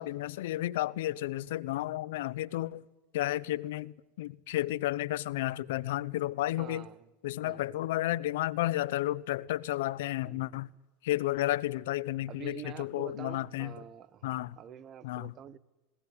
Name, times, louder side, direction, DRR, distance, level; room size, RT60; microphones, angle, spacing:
voice 1, 0.0-2.8 3.1-6.9 7.2-10.7 11.0-13.7 14.2-14.6 15.0-15.3, left 15 dB, 80° left, 0.8 m, -32 dB
voice 2, 6.6-7.1 7.4-7.8 10.2-10.7 12.3-15.6, right 9 dB, 40° right, 1.1 m, -47 dB
21.0 x 18.5 x 9.9 m
supercardioid pair, 120°, 0 cm